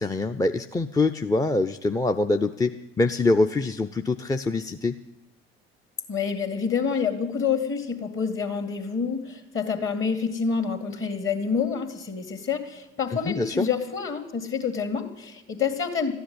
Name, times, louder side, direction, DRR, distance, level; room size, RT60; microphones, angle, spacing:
voice 1, 0.0-4.9 13.1-13.7, left 2 dB, 10° left, 7 dB, 0.6 m, -24 dB
voice 2, 6.1-16.1, left 6 dB, 40° left, 7 dB, 2.2 m, -27 dB
13.0 x 10.0 x 9.5 m, 0.99 s
figure-of-eight pair, 55°, 31 cm